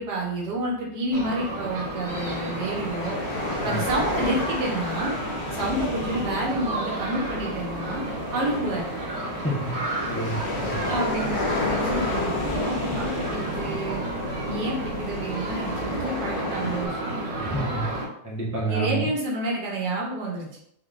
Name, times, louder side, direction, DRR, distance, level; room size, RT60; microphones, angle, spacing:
voice 1, 0.0-3.2 3.6-5.1 5.5-8.9 10.9-14.0 14.4-17.0 18.7-20.6, right 1 dB, 80° right, -2 dB, 1.6 m, -29 dB
sound 1, 1.1-18.1, right 2 dB, 50° right, 0.7 m, -32 dB
sound 2, 2.1-16.9, left 2 dB, 75° left, 0.4 m, -32 dB
voice 2, 9.4-9.8 10.0-10.4 10.7-10.8 17.4-17.9 18.2-19.1, right 2 dB, 15° left, -6 dB, 0.5 m, -28 dB
3.9 x 3.5 x 2.4 m, 0.72 s
omnidirectional pair, 1.8 m